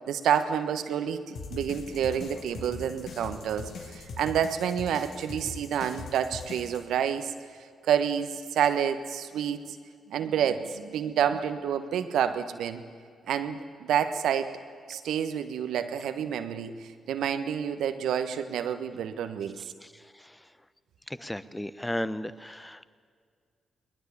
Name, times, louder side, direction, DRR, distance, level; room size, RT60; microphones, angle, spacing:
voice 1, 0.1-7.3 7.9-9.8 10.1-12.8 13.3-14.6 14.9-19.6, right 8 dB, 75° right, 9 dB, 1.3 m, -29 dB
sound 1, 1.3-6.8, left 4 dB, 70° left, 1.8 m, -41 dB
voice 2, 19.8-20.4 21.1-22.8, left 1 dB, 10° left, 15 dB, 1.2 m, -35 dB
20.5 x 20.0 x 8.5 m, 2.1 s
hypercardioid pair, 45°, 0 cm